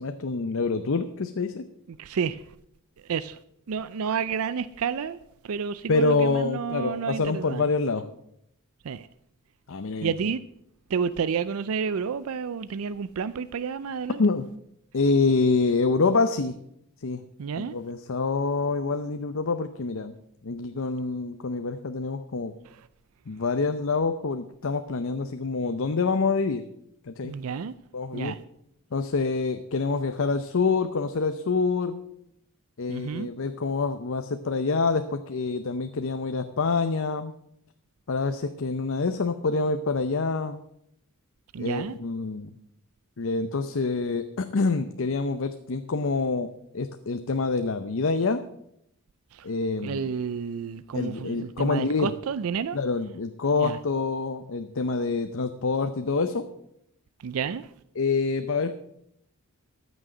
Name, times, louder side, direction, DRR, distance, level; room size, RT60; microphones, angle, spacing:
voice 1, 0.0-1.6 5.9-8.0 9.7-10.1 14.2-14.5 14.9-16.6 17.0-17.2 17.6-20.1 20.4-22.5 23.3-26.6 27.1-27.3 27.9-28.3 28.9-32.0 32.8-37.3 38.1-40.6 41.6-42.6 43.2-48.4 49.4-50.0 50.9-52.1 52.7-56.5 58.0-58.9, left 4 dB, 60° left, 0.6 m, -26 dB
voice 2, 1.9-2.5 3.0-3.4 3.7-7.7 8.8-9.1 10.0-10.4 10.9-14.2 17.4-17.8 22.6-22.9 27.2-27.7 28.1-28.4 32.9-33.3 41.5-42.0 49.3-49.5 49.8-52.8 53.6-53.8 57.2-57.7, right 6 dB, 70° right, 0.4 m, -30 dB
14.0 x 6.3 x 7.6 m
head